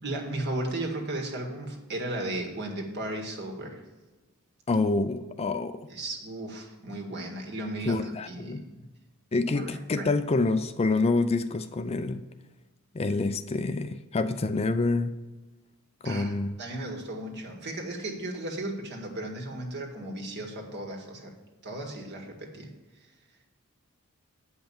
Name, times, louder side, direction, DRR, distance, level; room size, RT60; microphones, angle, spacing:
voice 1, 0.0-3.8 5.9-8.9 9.5-10.1 16.0-16.3 16.6-21.3 21.6-22.7, right 1 dB, 55° right, 1 dB, 1.9 m, -35 dB
voice 2, 4.7-5.8 7.9-8.6 9.3-12.3 12.9-15.2 16.0-16.6, left 3 dB, 30° left, 10 dB, 0.4 m, -27 dB
9.0 x 5.5 x 7.1 m, 1.2 s
head